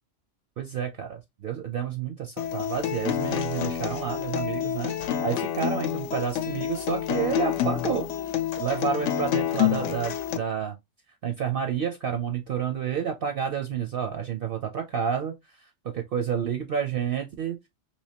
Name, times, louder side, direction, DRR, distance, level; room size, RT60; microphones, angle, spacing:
voice 1, 0.6-4.9 5.2-8.1 8.6-10.8 11.2-15.3 15.9-17.6, right 7 dB, 60° right, 0.6 m, -29 dB
Acoustic guitar, 2.4-10.4, left 10 dB, 75° left, 0.9 m, -28 dB
3.3 x 2.7 x 2.7 m
omnidirectional pair, 1.3 m